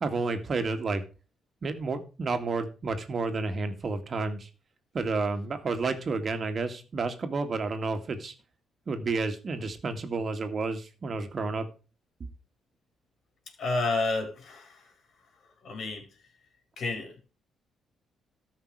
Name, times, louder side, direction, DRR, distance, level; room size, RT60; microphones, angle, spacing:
voice 1, 0.0-1.0 1.6-4.5 4.9-8.3 8.9-11.7, right 3 dB, 45° right, 8 dB, 2.1 m, -30 dB
voice 2, 13.6-14.8 15.6-16.1 16.8-17.2, left 3 dB, 60° left, 4 dB, 4.7 m, -30 dB
13.5 x 6.0 x 4.8 m, 0.33 s
cardioid pair, 90°, 0 cm